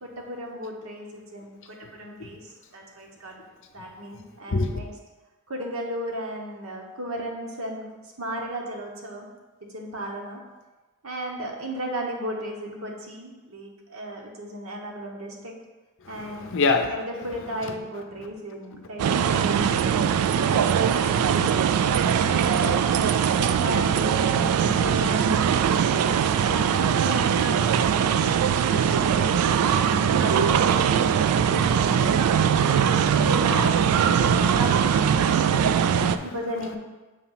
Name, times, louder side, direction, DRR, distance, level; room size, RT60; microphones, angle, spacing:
voice 1, 0.0-3.4 3.7-4.9 5.5-7.9 8.2-9.3 9.7-10.4 11.0-15.5 16.1-16.4 16.9-19.6 20.2-21.7 22.2-22.9 23.3-25.4 26.2-31.1 31.6-32.0 32.4-32.5 33.0-35.2 35.8-36.8, right 1 dB, 65° right, 0 dB, 1.1 m, -35 dB
voice 2, 16.2-16.9 31.4-32.2 32.5-33.0 34.4-34.5 35.5-36.2, left 3 dB, 60° left, 6 dB, 0.6 m, -28 dB
sound 1, 19.0-36.2, right 8 dB, 85° right, 0.3 m, -21 dB
6.7 x 2.9 x 5.6 m, 1.2 s
head